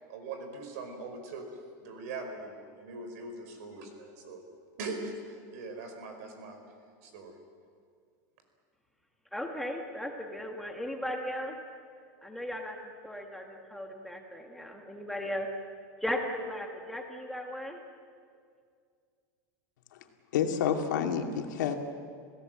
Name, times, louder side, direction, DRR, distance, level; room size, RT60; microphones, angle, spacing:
voice 1, 0.1-1.4 1.8-4.4 4.8-6.6 7.0-7.3, right 3 dB, 60° right, 5 dB, 5.0 m, -41 dB
voice 2, 9.3-11.6 12.2-12.8 13.0-17.8, left 1 dB, ahead, 2 dB, 1.6 m, -36 dB
voice 3, 20.3-21.7, left 8 dB, 90° left, 3 dB, 2.5 m, -28 dB
28.5 x 17.0 x 7.8 m, 2.2 s
supercardioid pair, 175°, 10 cm